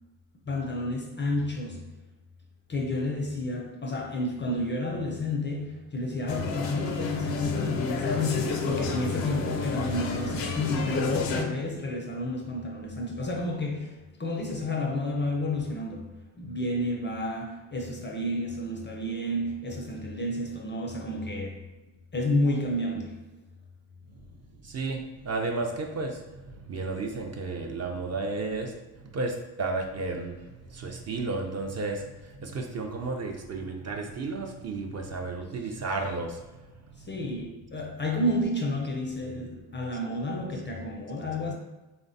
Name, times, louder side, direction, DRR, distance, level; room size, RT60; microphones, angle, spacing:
voice 1, 0.5-1.9 2.7-21.7 22.1-23.2 35.6-35.7 37.1-41.5, left 1 dB, 25° left, 0.4 m, -30 dB
sound 1, 6.3-11.4, left 4 dB, 80° left, 0.5 m, -30 dB
voice 2, 24.6-28.7 29.1-30.4 30.7-32.0 32.4-36.4, right 3 dB, 35° right, 0.4 m, -32 dB
3.2 x 2.1 x 2.6 m
hypercardioid pair, 55°, 47 cm